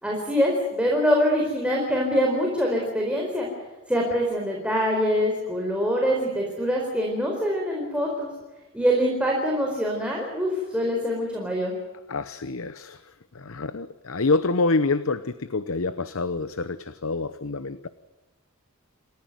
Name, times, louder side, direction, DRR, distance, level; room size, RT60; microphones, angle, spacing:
voice 1, 0.0-3.5 3.9-8.3 8.7-11.8, equal, 5° right, -1 dB, 4.4 m, -24 dB
voice 2, 12.1-17.9, left 3 dB, 75° left, 13 dB, 0.9 m, -27 dB
28.5 x 15.0 x 9.3 m, 1.1 s
head